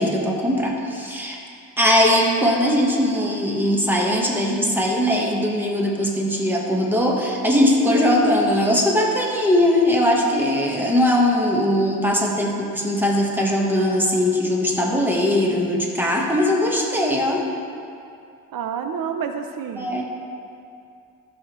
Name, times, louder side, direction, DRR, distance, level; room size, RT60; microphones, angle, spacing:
voice 1, 0.0-1.4 1.8-17.4 19.8-20.0, left 1 dB, 5° right, -1 dB, 1.1 m, -20 dB
voice 2, 18.5-19.9, right 7 dB, 75° right, 6 dB, 0.6 m, -28 dB
12.0 x 6.6 x 3.0 m, 2.5 s
cardioid pair, 120°, 35 cm